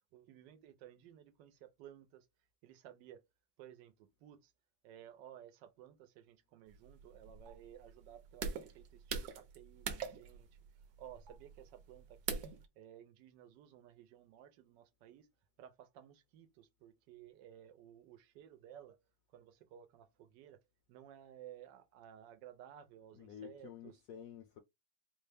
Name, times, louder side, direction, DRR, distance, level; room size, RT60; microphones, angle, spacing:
voice 1, 0.1-2.3 2.6-3.2 3.6-4.5 4.8-10.5 11.0-12.4 12.8-15.3 15.6-19.0 19.3-20.6 20.9-23.9, right 10 dB, 85° right, 1.3 m, -56 dB
sound 1, 6.7-12.7, right 6 dB, 70° right, 1.1 m, -43 dB
voice 2, 23.1-24.6, left 9 dB, 70° left, 0.8 m, -51 dB
4.0 x 2.1 x 3.3 m
omnidirectional pair, 1.9 m